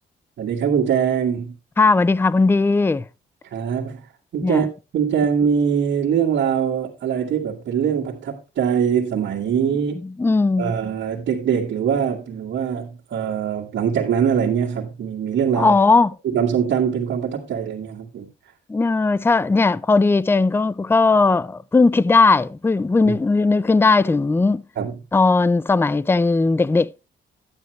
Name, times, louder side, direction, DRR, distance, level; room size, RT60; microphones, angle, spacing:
voice 1, 0.4-1.6 3.5-4.1 4.3-4.7 4.9-9.9 10.6-15.8 16.2-18.3 23.1-23.2 24.8-25.0, right 7 dB, 65° right, 2.0 m, -22 dB
voice 2, 1.8-3.0 4.4-4.7 10.0-10.7 15.6-16.2 18.7-24.6 25.1-26.9, left 3 dB, 10° left, 0.4 m, -17 dB
11.5 x 9.1 x 3.3 m
cardioid pair, 90°, 20 cm